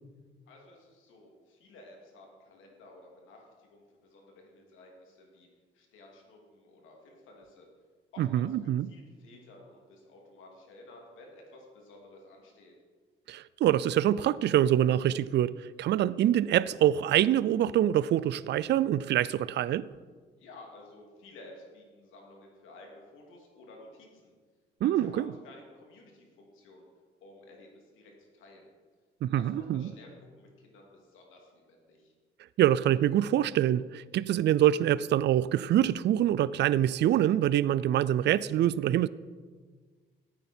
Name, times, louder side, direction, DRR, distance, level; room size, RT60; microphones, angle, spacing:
voice 1, 0.5-5.5 5.7-7.7 8.1-8.6 8.8-12.7 20.4-24.3 24.8-26.8 27.2-28.7 29.3-32.1, left 2 dB, 90° left, 2.7 m, -53 dB
voice 2, 8.2-8.9 13.3-19.9 24.8-25.3 29.2-29.9 32.6-39.1, right 11 dB, 60° right, 0.4 m, -25 dB
14.5 x 9.4 x 4.4 m
cardioid pair, 90°, 20 cm